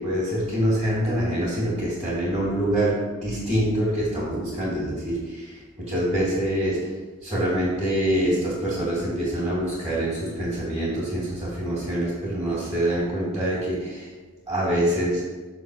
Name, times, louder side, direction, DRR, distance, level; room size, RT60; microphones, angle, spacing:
voice 1, 0.0-6.9 7.2-14.1 14.5-15.2, right 1 dB, 30° right, -10 dB, 2.0 m, -25 dB
5.5 x 4.1 x 6.1 m, 1.3 s
head